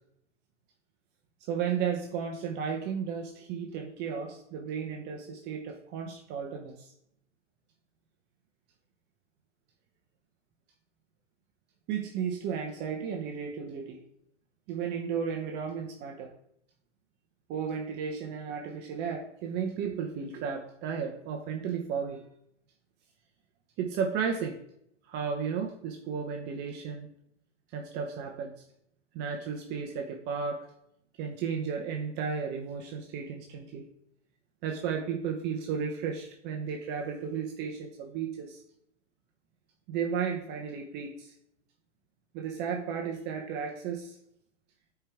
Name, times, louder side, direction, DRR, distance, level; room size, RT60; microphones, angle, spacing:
voice 1, 1.5-6.9 11.9-14.0 14.7-16.3 17.5-22.2 23.8-24.6 25.1-27.1 27.7-28.5 29.1-30.7 31.2-33.8 34.6-38.6 39.9-41.3 42.3-44.2, right 6 dB, 30° right, 2 dB, 0.8 m, -34 dB
9.9 x 4.6 x 3.5 m, 0.74 s
figure-of-eight pair, 110°, 36 cm